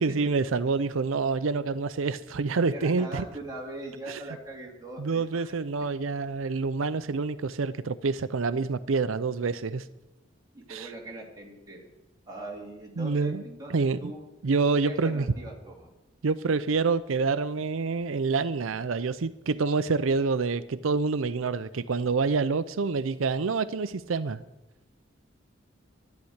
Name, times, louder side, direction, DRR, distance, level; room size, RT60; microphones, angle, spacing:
voice 1, 0.0-3.2 4.1-4.2 5.0-9.8 10.7-10.9 13.0-13.4 13.7-14.1 14.4-15.3 16.2-24.4, right 4 dB, 85° right, 13 dB, 0.5 m, -27 dB
voice 2, 2.7-5.5 10.5-11.9 12.3-14.2 14.8-15.9, right 2 dB, 20° right, -2 dB, 3.0 m, -41 dB
11.5 x 11.5 x 8.0 m, 0.98 s
head